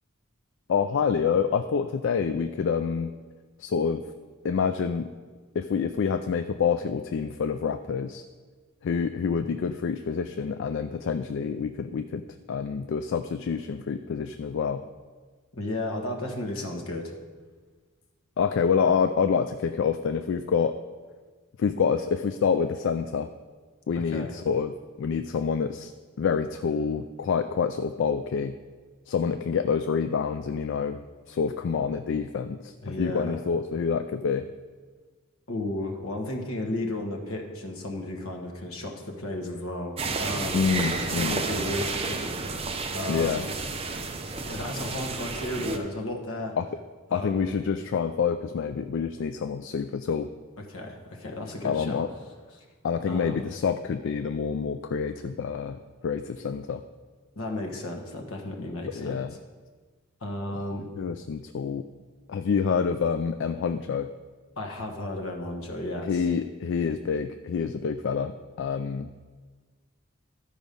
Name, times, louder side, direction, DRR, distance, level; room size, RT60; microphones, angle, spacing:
voice 1, 0.7-3.1 3.6-4.0 4.4-5.1 5.5-8.2 8.8-12.2 12.5-14.8 18.4-20.8 21.6-23.3 23.9-24.7 25.0-25.9 26.2-28.5 29.1-31.0 31.3-34.5 40.5-41.4 43.1-43.4 46.6-46.7 47.1-50.3 51.6-52.1 52.8-56.8 59.0-59.3 60.5-61.9 62.3-64.1 66.1-69.1, left 6 dB, 55° left, 9 dB, 0.3 m, -27 dB
voice 2, 15.5-17.1 23.9-24.3 32.8-33.4 35.5-40.7 41.0-42.6 42.9-43.5 44.5-46.5 47.1-47.5 50.7-52.0 52.6-52.7 53.1-53.5 57.3-59.2 60.2-60.9 64.6-66.2, left 1 dB, 75° left, 2 dB, 1.3 m, -34 dB
sound 1, 40.0-45.8, right 3 dB, 25° right, 0.6 m, -31 dB
12.5 x 5.0 x 5.3 m, 1.4 s
head